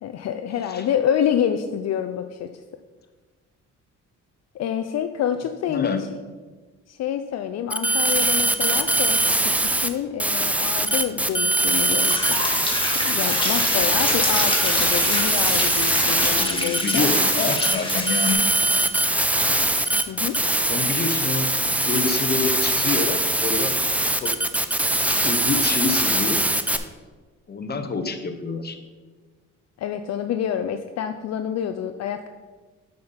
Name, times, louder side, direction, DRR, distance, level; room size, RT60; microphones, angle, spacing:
voice 1, 0.0-2.5 4.5-6.1 6.9-12.4 13.0-17.1 20.1-20.4 29.8-32.3, left 9 dB, 60° left, 8 dB, 0.5 m, -27 dB
voice 2, 5.7-6.0 16.3-18.4 20.6-24.3 25.0-26.4 27.5-28.8, left 4 dB, 35° left, 7 dB, 1.0 m, -27 dB
sound 1, 7.7-9.9 10.2-26.8, right 1 dB, 5° right, 0.5 m, -22 dB
sound 2, 12.0-18.3, left 2 dB, 15° left, 2.0 m, -28 dB
7.8 x 5.2 x 5.6 m, 1.4 s
cardioid pair, 90°, 30 cm